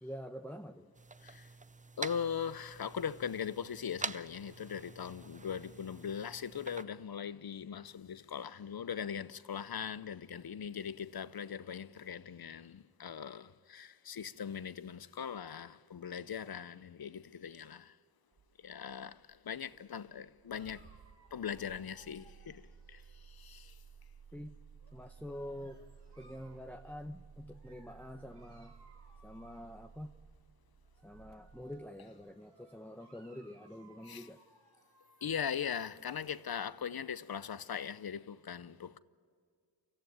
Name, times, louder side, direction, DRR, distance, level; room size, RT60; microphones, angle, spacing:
voice 1, 0.0-0.9 24.3-24.5 24.9-25.8 26.2-28.7 29.2-30.1 31.0-34.4, equal, 5° left, 0.8 m, -46 dB
sound 1, 0.9-6.8, right 3 dB, 20° right, 0.5 m, -46 dB
voice 2, 2.0-18.0 18.6-20.9 21.3-23.8 34.0-34.3 35.2-39.0, left 7 dB, 60° left, 0.7 m, -40 dB
Engine starting, 18.3-32.4, right 6 dB, 50° right, 1.1 m, -57 dB
Dog, 20.6-23.9 24.8-26.7 27.5-30.1 30.8-35.7, right 3 dB, 75° right, 2.7 m, -65 dB
25.0 x 14.5 x 9.3 m
wide cardioid pair, 60°, 41 cm